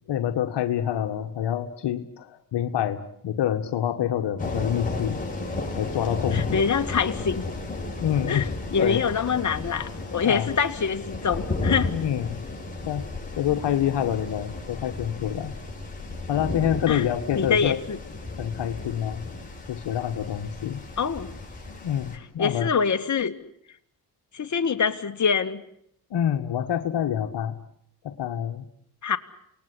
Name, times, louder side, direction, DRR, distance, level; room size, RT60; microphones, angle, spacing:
voice 1, 0.1-5.2 5.7-6.7 8.0-8.5 8.8-9.0 10.2-10.5 11.9-12.4 12.8-13.1 13.4-15.5 16.3-17.8 18.4-19.2 19.7-20.8 21.7-22.7 26.1-27.6 28.0-28.6, left 10 dB, 70° left, 6 dB, 1.7 m, -27 dB
sound 1, 4.4-22.2, left 2 dB, 20° left, 7.1 m, -34 dB
voice 2, 6.3-7.4 8.3-11.9 16.9-17.0 17.4-18.0 21.0-21.3 22.4-23.3 24.3-25.6 29.0-29.2, left 6 dB, 40° left, 6 dB, 2.1 m, -25 dB
28.0 x 19.5 x 9.9 m, 0.72 s
supercardioid pair, 65°, 43 cm